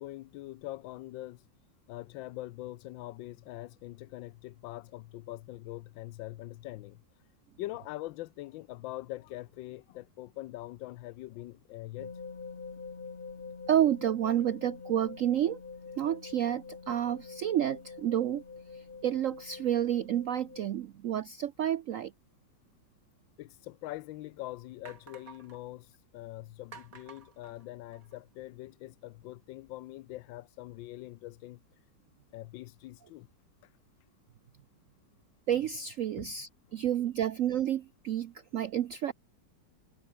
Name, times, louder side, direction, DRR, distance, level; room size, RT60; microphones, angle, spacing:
voice 1, 0.0-1.4 1.9-7.0 7.6-12.1 23.4-25.9 26.1-31.6 32.3-33.3 36.2-36.3, left 17 dB, 85° left, 1.3 m, -43 dB
sound 1, 12.0-20.7, left 4 dB, 30° left, 1.5 m, -45 dB
voice 2, 13.7-15.6 16.0-18.4 19.0-22.1 35.5-39.1, right 11 dB, 75° right, 0.7 m, -30 dB
sound 2, 23.5-23.6 24.2-24.3 24.8-25.6 26.7-28.2, right 5 dB, 50° right, 2.4 m, -52 dB
omnidirectional pair, 2.0 m